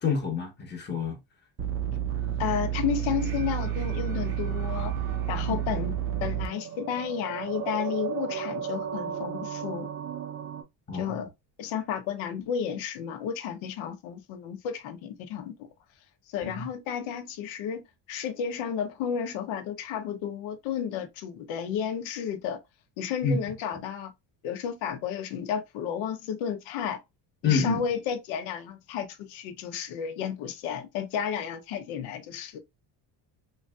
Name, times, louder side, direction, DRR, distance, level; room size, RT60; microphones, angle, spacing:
voice 1, 0.0-1.2 5.4-5.6 10.9-11.2 16.4-16.7 23.2-23.4 27.4-27.8, left 5 dB, 25° left, 0.7 m, -27 dB
sound 1, 1.6-6.5, right 10 dB, 30° right, 0.5 m, -30 dB
sound 2, 2.1-10.6, right 8 dB, 80° right, 0.9 m, -37 dB
voice 2, 2.4-4.9 5.3-5.9 6.2-9.9 10.9-11.3 11.6-15.5 16.3-17.8 18.1-22.6 23.0-24.1 24.4-27.0 27.4-32.6, left 8 dB, 90° left, 0.7 m, -32 dB
3.1 x 2.6 x 2.2 m
cardioid pair, 130°, 46 cm